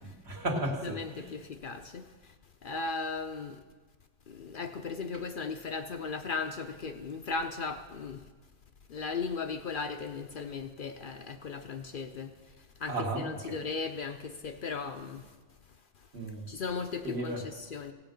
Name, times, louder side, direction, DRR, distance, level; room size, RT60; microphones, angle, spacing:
voice 1, 0.0-1.4 12.9-13.6 16.1-16.5 17.0-17.4, right 2 dB, 65° right, 0 dB, 1.9 m, -35 dB
voice 2, 0.8-2.0 2.6-3.6 4.4-8.2 8.9-12.3 12.8-15.2 16.5-17.9, left 4 dB, 55° left, 7 dB, 0.7 m, -36 dB
16.5 x 7.7 x 5.1 m, 1.4 s
omnidirectional pair, 1.2 m